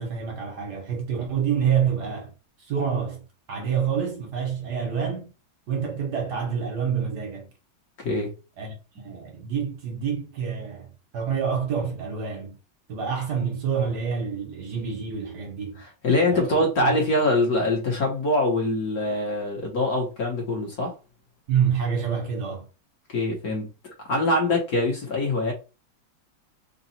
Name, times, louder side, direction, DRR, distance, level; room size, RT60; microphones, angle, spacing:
voice 1, 0.0-2.3 2.6-5.3 5.7-7.5 8.6-12.6 12.9-15.8 16.3-17.0 21.5-22.7, right 7 dB, 60° right, 1.6 m, -27 dB
voice 2, 8.0-8.3 16.0-20.9 23.1-23.7 24.1-25.5, left 2 dB, 50° left, 1.5 m, -23 dB
3.9 x 2.4 x 4.2 m
omnidirectional pair, 2.2 m